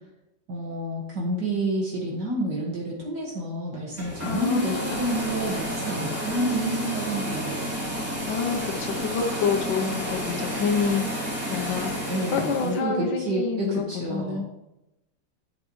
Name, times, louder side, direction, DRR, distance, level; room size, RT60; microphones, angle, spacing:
voice 1, 0.5-7.7 12.1-14.4, right 1 dB, 65° right, -3 dB, 2.2 m, -29 dB
sound 1, 3.9-12.8, equal, 5° right, 3.2 m, -31 dB
voice 2, 4.2-5.1 8.3-14.5, left 6 dB, 85° left, 2 dB, 1.5 m, -28 dB
11.5 x 6.6 x 3.1 m, 0.90 s
omnidirectional pair, 2.0 m